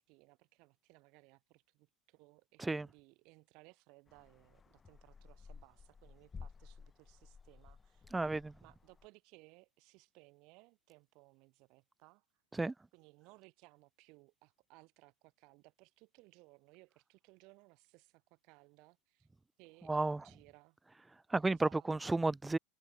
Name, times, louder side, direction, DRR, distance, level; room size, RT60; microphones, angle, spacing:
voice 1, 0.0-8.1 8.6-12.2 12.9-19.3 19.6-20.8 21.5-22.2, right 26 dB, 50° right, 3.1 m, -63 dB
sound 1, 4.1-9.1, left 5 dB, 20° left, 0.9 m, -55 dB
voice 2, 8.1-8.5 12.5-12.7 19.8-20.3 21.3-22.6, right 2 dB, 10° right, 0.6 m, -33 dB
hypercardioid pair, 90°, 0 cm